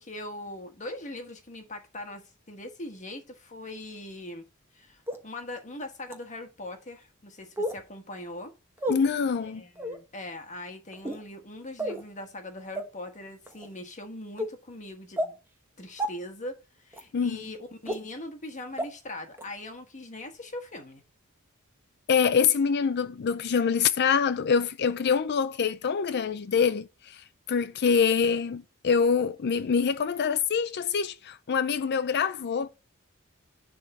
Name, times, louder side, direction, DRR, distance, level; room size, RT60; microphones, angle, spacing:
voice 1, 0.0-4.5 4.7-8.5 9.4-15.4 15.8-21.0, left 1 dB, 35° left, 1.3 m, -41 dB
sound 1, 5.1-5.2 6.1-6.2 7.6-7.8 8.8-9.0 9.8-10.0 10.9-11.2 11.8-12.0 12.7-12.8 13.5-13.7 14.4-14.5 15.2-15.3 16.0-16.1 16.9-17.0 17.9-18.0 18.8-18.9 19.4-19.5, equal, 10° right, 1.1 m, -30 dB
voice 2, 8.9-9.6 17.1-17.4 22.1-27.2 27.5-32.7, left 6 dB, 50° left, 0.4 m, -25 dB
10.5 x 3.6 x 4.1 m
head